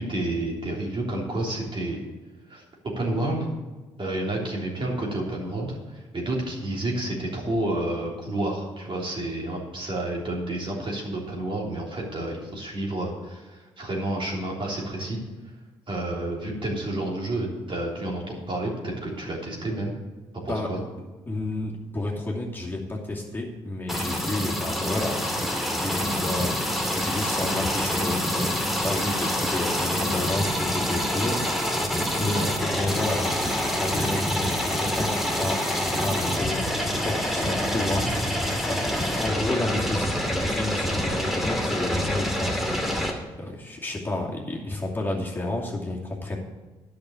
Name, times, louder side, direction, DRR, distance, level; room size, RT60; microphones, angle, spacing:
voice 1, 0.0-2.0 2.5-2.6 3.0-3.5 4.0-15.2 15.9-19.9 20.4-20.8 32.3-32.5, right 1 dB, 40° right, -2 dB, 3.2 m, -30 dB
voice 2, 20.5-20.9 21.3-33.5 33.8-36.7 37.0-46.4, left 2 dB, 15° left, -3 dB, 2.6 m, -31 dB
sound 1, 23.9-43.1, equal, ahead, 2.5 m, -26 dB
10.5 x 6.2 x 7.2 m, 1.2 s
hypercardioid pair, 45°, 13 cm